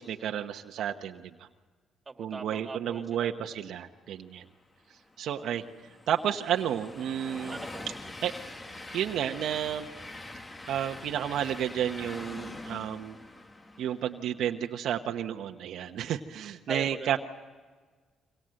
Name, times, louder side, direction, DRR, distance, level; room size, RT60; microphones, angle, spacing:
voice 1, 0.0-1.5 2.2-4.5 5.2-5.6 6.1-7.6 8.2-8.3 8.9-9.9 10.7-13.2 13.8-17.2, right 10 dB, 75° right, 4 dB, 1.0 m, -31 dB
voice 2, 2.1-3.4 7.5-7.9 16.7-17.2, right 3 dB, 25° right, 5 dB, 2.3 m, -40 dB
Train, 4.9-14.3, left 2 dB, 25° left, 1.4 m, -44 dB
27.0 x 24.5 x 7.7 m, 1.5 s
cardioid pair, 90°, 0 cm